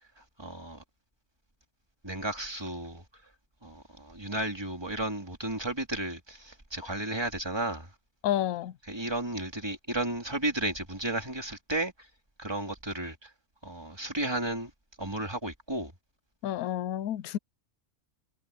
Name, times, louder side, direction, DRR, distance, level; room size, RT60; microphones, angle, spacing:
voice 1, 0.4-0.8 2.0-3.0 3.6-7.9 8.9-11.9 12.4-13.3 13.6-14.7 15.0-15.9, right 1 dB, 15° right, 2.9 m, -33 dB
voice 2, 8.2-8.7 16.4-17.4, left 12 dB, 75° left, 1.1 m, -30 dB
omnidirectional pair, 1.6 m